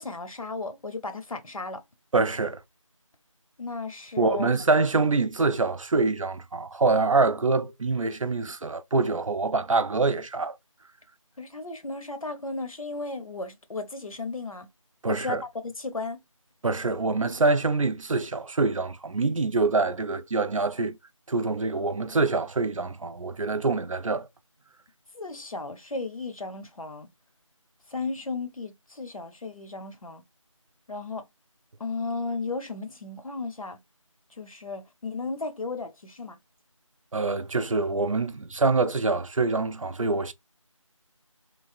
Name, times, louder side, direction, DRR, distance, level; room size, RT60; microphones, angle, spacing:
voice 1, 0.0-1.8 3.6-4.5 11.4-14.7 15.1-16.2 25.1-27.1 27.9-30.2 30.9-31.2 31.8-33.8 34.4-36.4, left 3 dB, 85° left, 0.8 m, -35 dB
voice 2, 2.1-2.6 4.2-10.6 15.0-15.4 16.6-21.0 21.3-24.3 37.1-40.3, right 3 dB, 70° right, 0.4 m, -25 dB
3.2 x 2.0 x 2.5 m
figure-of-eight pair, 175°, 17 cm